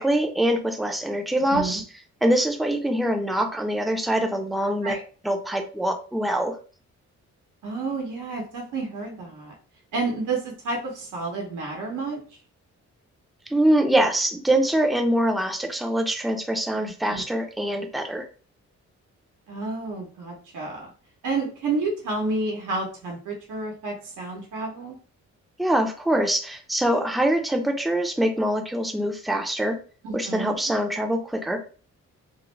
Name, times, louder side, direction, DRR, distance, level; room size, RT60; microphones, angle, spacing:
voice 1, 0.0-1.8 2.2-5.0 5.2-6.6 13.5-18.3 25.6-29.8 30.1-31.6, right 1 dB, ahead, 4 dB, 0.4 m, -24 dB
voice 2, 1.5-1.8 4.8-5.0 7.6-9.5 9.9-12.2 17.1-17.2 19.5-20.9 21.2-25.0 30.0-30.6, right 3 dB, 85° right, -1 dB, 0.8 m, -30 dB
2.4 x 2.0 x 3.1 m, 0.38 s
cardioid pair, 75°, 30 cm